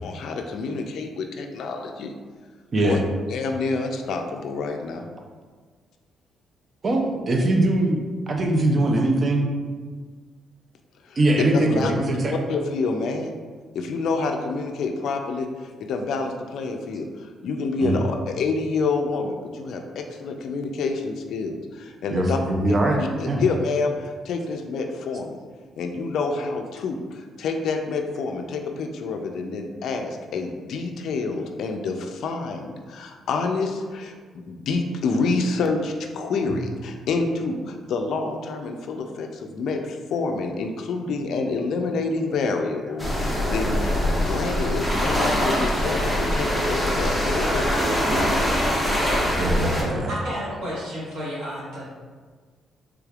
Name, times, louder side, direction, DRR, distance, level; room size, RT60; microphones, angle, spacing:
voice 1, 0.0-2.1 2.8-3.0 3.3-5.1 11.1-11.2 11.5-11.9 12.3-13.3 13.7-22.4 22.7-25.4 25.8-34.1 34.5-47.9, left 4 dB, 70° left, 4 dB, 0.3 m, -28 dB
voice 2, 2.7-3.0 6.8-8.0 8.3-9.5 11.2-12.3 17.8-18.0 22.1-23.4 36.5-36.6 49.4-50.1, right 1 dB, 40° right, 2 dB, 0.5 m, -22 dB
sound 1, 43.0-49.8, equal, 5° right, 0.8 m, -23 dB
voice 3, 49.9-51.9, equal, 85° right, -8 dB, 1.2 m, -32 dB
3.3 x 3.2 x 2.3 m, 1.5 s
cardioid pair, 90°, 0 cm